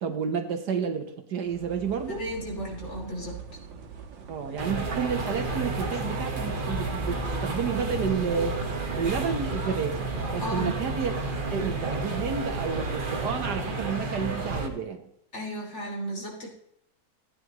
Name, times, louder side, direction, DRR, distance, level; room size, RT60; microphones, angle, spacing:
voice 1, 0.0-2.2 4.3-8.6 8.9-11.1 11.5-15.1, right 6 dB, 65° right, 6 dB, 1.6 m, -31 dB
sound 1, 1.5-13.0, right 5 dB, 90° right, 2.0 m, -43 dB
voice 2, 2.1-3.4 10.4-10.8 15.3-16.5, equal, 35° left, -1 dB, 3.2 m, -34 dB
sound 2, 4.6-14.7, right 2 dB, 30° right, 1.3 m, -31 dB
15.5 x 9.6 x 3.1 m, 0.75 s
omnidirectional pair, 2.0 m